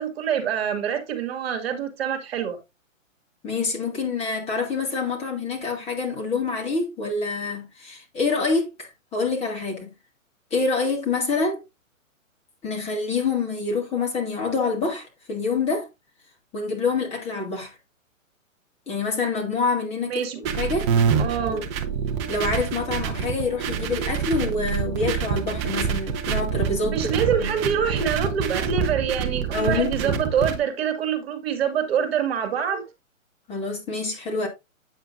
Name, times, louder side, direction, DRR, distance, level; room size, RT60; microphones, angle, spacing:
voice 1, 0.0-2.6 20.1-20.4 21.2-21.7 26.9-32.9, right 7 dB, 50° right, 2.1 m, -25 dB
voice 2, 3.4-9.9 10.5-11.6 12.6-15.9 16.5-17.7 18.9-20.3 20.6-20.9 21.4-21.6 22.3-27.0 27.4-27.5 29.5-30.1 33.5-34.5, left 4 dB, 15° left, 1.9 m, -26 dB
sound 1, 20.4-30.6, right 7 dB, 20° right, 0.8 m, -26 dB
8.8 x 7.2 x 2.6 m
hypercardioid pair, 135°, 40 cm